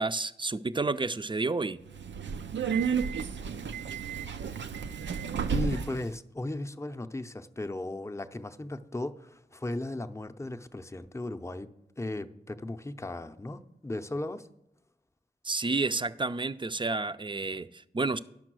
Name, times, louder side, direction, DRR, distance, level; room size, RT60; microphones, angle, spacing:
voice 1, 0.0-1.8 15.4-18.2, right 3 dB, 25° right, 0.5 m, -30 dB
Subway metro underground, 1.9-6.1, right 6 dB, 85° right, 0.4 m, -32 dB
voice 2, 5.5-11.7 12.0-14.5, left 2 dB, 15° left, 0.6 m, -36 dB
10.5 x 5.8 x 6.2 m
cardioid pair, 40°, 18 cm